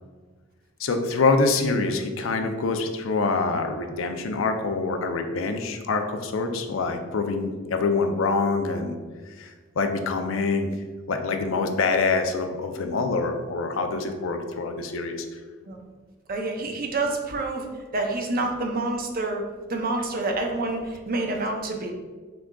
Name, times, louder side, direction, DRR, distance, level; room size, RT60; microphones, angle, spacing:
voice 1, 0.8-8.9 9.4-10.7 11.1-15.4, left 3 dB, 75° left, 5 dB, 0.5 m, -25 dB
voice 2, 16.3-17.7 17.9-19.4 19.7-21.9, right 2 dB, 45° right, 2 dB, 0.6 m, -27 dB
6.0 x 3.7 x 2.3 m, 1.4 s
head